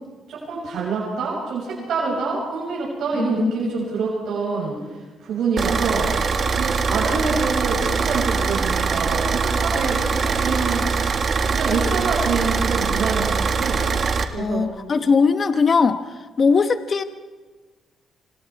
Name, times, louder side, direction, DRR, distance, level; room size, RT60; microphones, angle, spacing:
voice 1, 0.3-4.8 5.2-6.1 6.6-10.9 11.5-13.9 14.3-14.7, right 4 dB, 70° right, -4 dB, 7.0 m, -26 dB
voice 2, 3.1-3.5 14.4-16.0 16.4-17.0, left 5 dB, 40° left, 9 dB, 1.2 m, -19 dB
Car / Idling, 5.6-14.2, right 5 dB, 45° right, 1.9 m, -22 dB
27.0 x 26.5 x 4.8 m, 1.4 s
cardioid pair, 90°, 0 cm